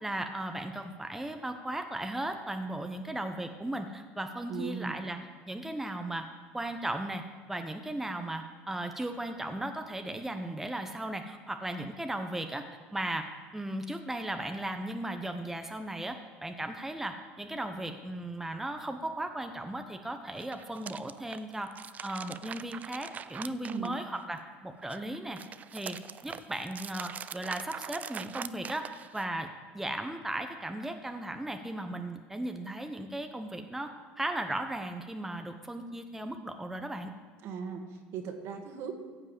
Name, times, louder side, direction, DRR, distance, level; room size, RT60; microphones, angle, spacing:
voice 1, 0.0-5.2 5.5-6.3 6.5-7.2 7.5-12.6 12.9-13.3 13.5-21.7 22.0-25.4 25.7-26.0 26.2-28.9 29.1-29.5 29.7-37.1, right 1 dB, 5° right, 6 dB, 0.8 m, -36 dB
voice 2, 4.5-5.0 23.6-23.9 37.4-38.9, right 6 dB, 60° right, 4 dB, 1.9 m, -38 dB
sound 1, 20.3-24.4 24.8-29.4, right 8 dB, 30° right, 0.4 m, -43 dB
15.0 x 5.4 x 8.3 m, 1.5 s
cardioid pair, 120°, 5 cm